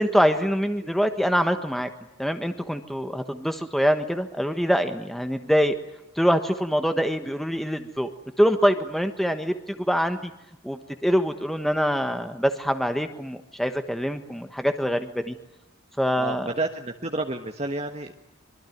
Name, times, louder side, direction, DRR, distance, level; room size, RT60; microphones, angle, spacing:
voice 1, 0.0-1.9 2.2-5.8 6.1-8.1 8.4-10.3 10.6-15.3 16.0-16.5, equal, ahead, 8 dB, 1.3 m, -24 dB
voice 2, 16.2-18.1, right 2 dB, 30° right, 4 dB, 1.4 m, -30 dB
25.5 x 23.5 x 9.4 m, 0.86 s
head